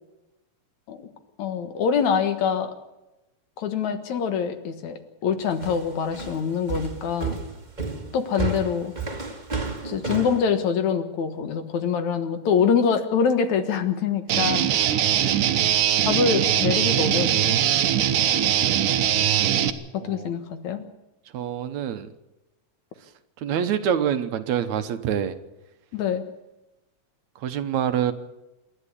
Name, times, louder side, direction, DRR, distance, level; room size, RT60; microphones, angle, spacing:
voice 1, 1.4-2.7 3.6-7.4 8.1-8.9 9.8-14.9 16.0-17.6 19.9-20.8 25.9-26.3, left 6 dB, 70° left, 8 dB, 2.7 m, -25 dB
sound 1, 5.6-10.4, right 4 dB, 15° right, 1.9 m, -31 dB
Guitar, 14.3-19.7, right 10 dB, 90° right, 2.7 m, -21 dB
voice 2, 20.0-20.3 21.3-22.1 23.4-25.4 27.4-28.1, right 9 dB, 70° right, 10 dB, 2.3 m, -26 dB
27.0 x 11.5 x 8.4 m, 0.98 s
omnidirectional pair, 3.5 m